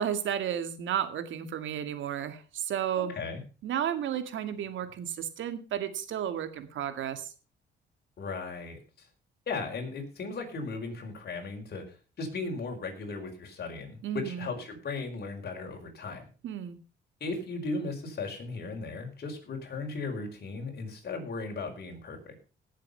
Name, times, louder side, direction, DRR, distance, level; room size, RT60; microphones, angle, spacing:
voice 1, 0.0-3.2 3.6-7.3 14.0-14.5 16.4-16.8, right 9 dB, 75° right, 10 dB, 2.1 m, -32 dB
voice 2, 3.1-3.4 8.2-9.1 9.5-16.3 17.2-22.4, left 3 dB, 55° left, 2 dB, 5.0 m, -37 dB
17.5 x 7.6 x 5.6 m, 0.36 s
cardioid pair, 90°, 20 cm